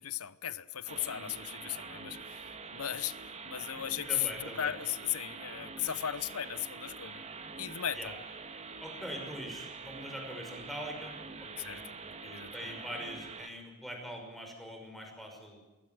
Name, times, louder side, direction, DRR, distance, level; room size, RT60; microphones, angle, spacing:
voice 1, 0.0-7.2 7.6-8.1 11.6-11.8 12.2-12.7, left 11 dB, 85° left, 0.9 m, -37 dB
sound 1, 0.9-13.5, right 4 dB, 30° right, 1.8 m, -45 dB
voice 2, 1.0-1.3 4.0-4.8 8.0-8.1 8.8-11.1 11.4-15.6, equal, ahead, 5.9 m, -43 dB
22.5 x 17.0 x 7.8 m
head